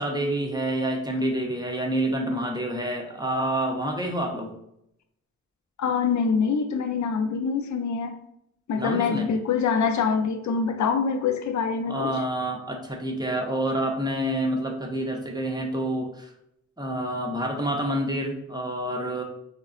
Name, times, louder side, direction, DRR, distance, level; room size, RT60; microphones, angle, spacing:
voice 1, 0.0-4.5 8.8-9.3 11.9-16.3 16.8-19.2, right 1 dB, 15° right, 1 dB, 0.6 m, -28 dB
voice 2, 5.8-8.2 8.7-12.1, left 5 dB, 65° left, 6 dB, 0.5 m, -25 dB
3.8 x 2.1 x 2.4 m, 0.77 s
cardioid pair, 60°, 31 cm